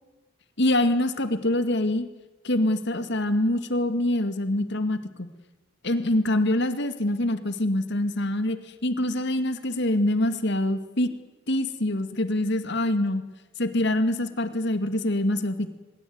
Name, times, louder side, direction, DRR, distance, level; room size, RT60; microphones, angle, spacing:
voice 1, 0.6-2.1 2.4-5.3 5.8-11.1 11.5-13.2 13.6-15.7, left 1 dB, 55° left, 10 dB, 2.1 m, -25 dB
24.0 x 21.5 x 9.5 m, 1.1 s
head